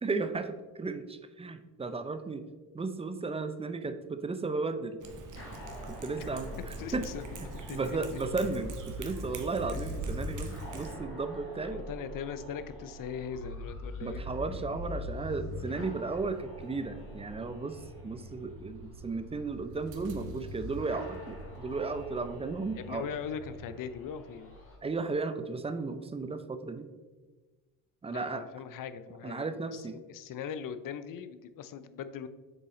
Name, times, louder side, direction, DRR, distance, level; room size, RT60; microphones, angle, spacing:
voice 1, 0.0-2.5 2.7-5.0 5.9-7.1 7.4-11.9 14.0-23.1 24.8-26.9 28.0-28.5 29.2-30.0, right 3 dB, 15° right, 10 dB, 0.4 m, -35 dB
Cat, 5.0-10.9, right 3 dB, 45° right, 1.1 m, -43 dB
sound 1, 5.3-24.8, left 1 dB, 30° left, 1.6 m, -43 dB
voice 2, 6.8-7.2 7.5-8.0 11.6-14.2 15.8-15.9 22.7-24.6 28.1-32.3, left 7 dB, 50° left, 12 dB, 0.6 m, -40 dB
sound 2, 15.5-23.8, right 2 dB, 90° right, 0.9 m, -50 dB
7.0 x 4.0 x 3.7 m, 1.3 s
supercardioid pair, 80°, 43 cm